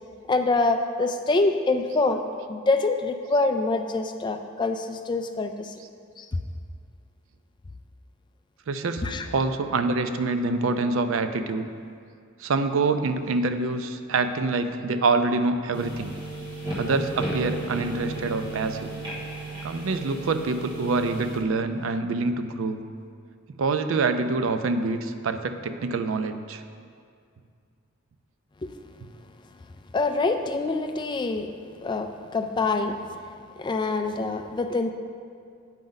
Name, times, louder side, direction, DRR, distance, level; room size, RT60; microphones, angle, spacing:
voice 1, 0.3-2.2 2.5-5.7 6.2-6.3 9.0-9.3 28.6-28.7 29.9-31.5 31.8-33.0 33.6-34.9, left 3 dB, 20° left, 6 dB, 0.3 m, -25 dB
voice 2, 8.7-11.7 12.4-16.1 16.8-18.9 19.6-22.8 23.6-26.6, right 3 dB, 70° right, 9 dB, 0.4 m, -26 dB
sound 1, 15.7-21.4, right 2 dB, 25° right, 1.6 m, -34 dB
8.9 x 5.2 x 3.9 m, 2.2 s
head